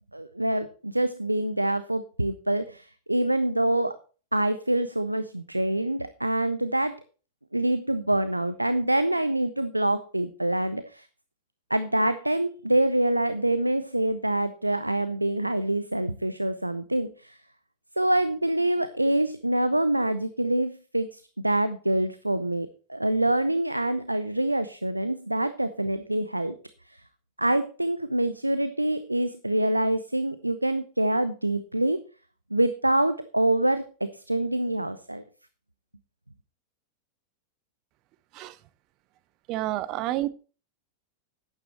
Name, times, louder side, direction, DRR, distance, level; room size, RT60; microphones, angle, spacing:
voice 1, 0.1-4.0 4.3-6.9 7.5-11.1 11.7-17.4 18.0-26.5 26.9-27.0 27.4-32.0 32.5-35.2, right 1 dB, 85° right, 13 dB, 0.5 m, -26 dB
voice 2, 39.5-40.3, right 15 dB, 40° right, 17 dB, 0.7 m, -29 dB
11.0 x 9.9 x 3.0 m, 0.36 s
figure-of-eight pair, 90°, 0 cm